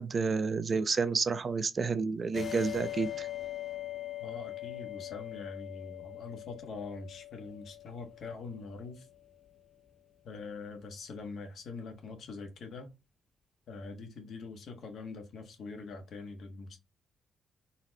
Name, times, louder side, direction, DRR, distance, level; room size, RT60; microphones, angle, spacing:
voice 1, 0.0-3.3, right 4 dB, 40° right, 0.3 m, -30 dB
sound 1, 2.3-9.5, left 14 dB, 55° left, 0.6 m, -42 dB
voice 2, 4.2-9.1 10.2-12.9 13.7-16.8, left 4 dB, 70° left, 0.9 m, -44 dB
4.0 x 2.1 x 2.5 m
cardioid pair, 100°, 0 cm